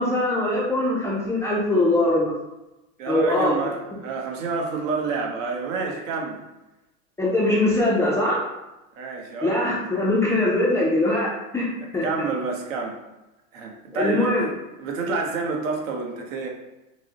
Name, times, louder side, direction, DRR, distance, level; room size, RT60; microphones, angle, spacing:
voice 1, 0.0-2.3 3.1-3.5 7.2-8.4 9.4-11.7 11.9-12.1 13.9-14.5, left 1 dB, 5° left, -6 dB, 0.3 m, -22 dB
voice 2, 3.0-6.4 9.0-9.7 12.0-13.0 13.5-14.5 14.8-16.5, right 4 dB, 75° right, 1 dB, 1.1 m, -28 dB
5.9 x 2.0 x 2.8 m, 1.0 s
supercardioid pair, 125°, 41 cm